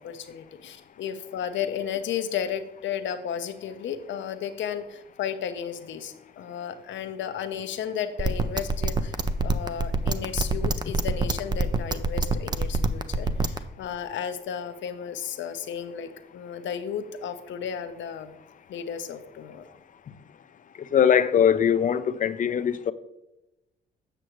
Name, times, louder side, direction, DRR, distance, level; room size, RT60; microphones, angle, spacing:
voice 1, 0.0-9.1 9.4-18.3 18.7-19.6, left 8 dB, 70° left, 0.7 m, -33 dB
sound 1, 8.2-13.6, right 3 dB, 20° right, 0.4 m, -24 dB
voice 2, 20.9-22.9, left 8 dB, 40° left, 0.4 m, -21 dB
7.9 x 6.0 x 3.0 m
cardioid pair, 95°, 20 cm